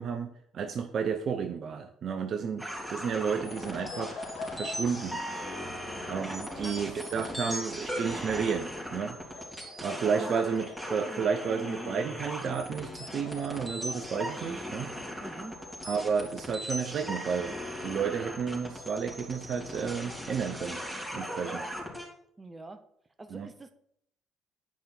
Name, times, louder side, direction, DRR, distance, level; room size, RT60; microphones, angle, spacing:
voice 1, 0.0-4.2 4.5-5.2 6.1-9.2 9.8-14.9 15.8-20.8 21.1-21.7 23.3-23.5, right 6 dB, 50° right, 7 dB, 0.6 m, -32 dB
sound 1, 2.6-22.1, equal, ahead, 3.3 m, -39 dB
sound 2, 2.7-22.0, left 3 dB, 65° left, 1.8 m, -48 dB
voice 2, 7.1-7.6 9.9-10.3 15.2-15.6 22.4-22.8 23.2-23.7, right 3 dB, 25° right, 9 dB, 1.1 m, -45 dB
9.4 x 5.3 x 4.4 m, 0.71 s
hypercardioid pair, 50°, 0 cm